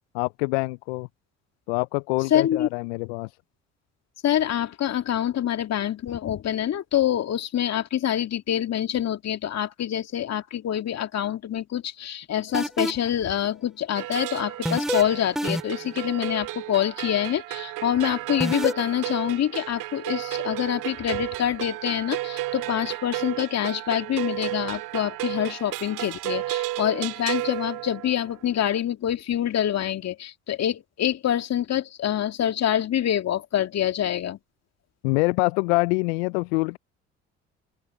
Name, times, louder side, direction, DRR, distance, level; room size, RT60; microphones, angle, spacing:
voice 1, 0.1-1.1 1.7-3.4 35.0-36.8, left 29 dB, 75° left, 0.5 m, -25 dB
voice 2, 2.3-2.7 4.2-34.4, left 10 dB, 50° left, 2.5 m, -26 dB
sound 1, 12.5-13.1 14.7-15.0 15.4-15.9 18.4-18.7, equal, ahead, 2.7 m, -26 dB
sound 2, 13.9-28.4, right 18 dB, 70° right, 2.3 m, -33 dB
open air
hypercardioid pair, 55°, 33 cm